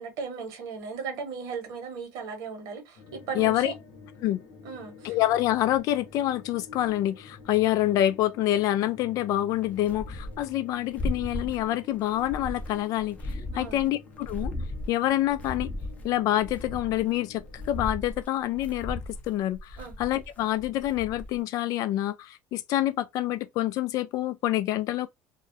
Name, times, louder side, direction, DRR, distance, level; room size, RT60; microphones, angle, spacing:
voice 1, 0.0-3.7 4.6-5.1 13.5-13.9 19.8-20.0, right 5 dB, 75° right, 1.1 m, -37 dB
sound 1, 3.0-17.7, left 4 dB, 80° left, 0.8 m, -49 dB
voice 2, 3.3-3.7 4.2-4.4 5.0-14.5 14.9-15.7 16.0-25.1, left 13 dB, 60° left, 0.3 m, -27 dB
sound 2, 9.6-10.5 10.8-11.7 12.0-13.9 14.2-16.1 16.4-21.4, left 1 dB, 20° left, 0.6 m, -36 dB
2.3 x 2.0 x 2.7 m
supercardioid pair, 95°, 7 cm